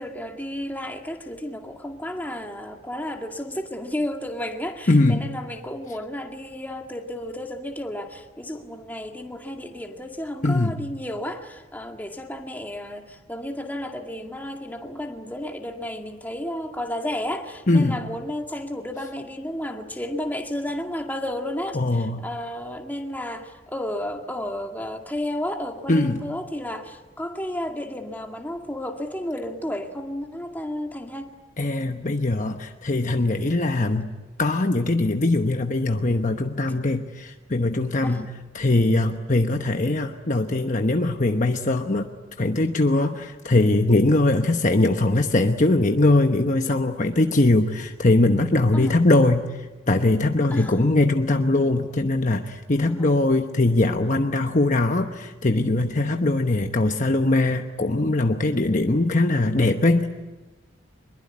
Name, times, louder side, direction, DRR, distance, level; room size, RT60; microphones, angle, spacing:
voice 1, 0.0-31.3 38.0-38.3 48.7-49.0 50.5-50.9 52.9-53.1, left 1 dB, 10° left, 3 dB, 2.0 m, -32 dB
voice 2, 4.9-5.2 10.4-10.8 17.7-18.0 21.7-22.3 25.9-26.3 31.6-34.1 34.4-42.1 42.4-60.1, left 2 dB, 40° left, 5 dB, 1.0 m, -21 dB
24.5 x 22.0 x 9.6 m, 1.2 s
head